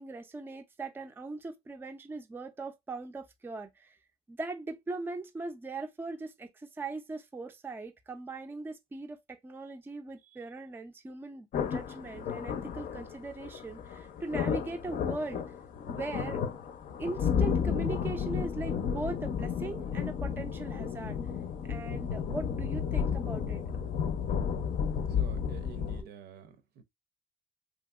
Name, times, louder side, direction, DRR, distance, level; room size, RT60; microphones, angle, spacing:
voice 1, 0.0-4.0 4.3-15.4 15.9-16.4 17.0-21.2 21.7-23.7 26.0-26.1, right 3 dB, 10° right, 0.4 m, -40 dB
sound 1, 11.5-26.0, left 7 dB, 55° left, 0.6 m, -32 dB
voice 2, 25.2-26.8, right 7 dB, 70° right, 0.6 m, -48 dB
2.9 x 2.6 x 2.3 m
cardioid pair, 110°, 17 cm